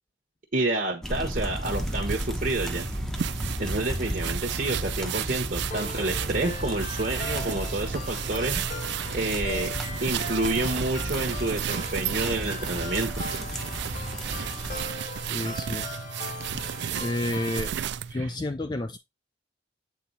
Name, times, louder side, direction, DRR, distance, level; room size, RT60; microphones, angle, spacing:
voice 1, 0.5-2.9 3.6-8.6 9.1-9.7 10.0-13.1 18.1-18.3, right 2 dB, 45° right, 1.2 m, -29 dB
sound 1, 1.0-14.9, equal, 5° left, 0.9 m, -34 dB
sound 2, 1.6-18.1, right 9 dB, 65° right, 0.4 m, -33 dB
sound 3, 5.7-17.7, left 3 dB, 40° left, 0.8 m, -40 dB
voice 2, 15.3-15.9 16.5-16.6 17.0-17.7 18.1-19.0, left 1 dB, 25° left, 0.4 m, -30 dB
7.7 x 4.2 x 4.0 m
head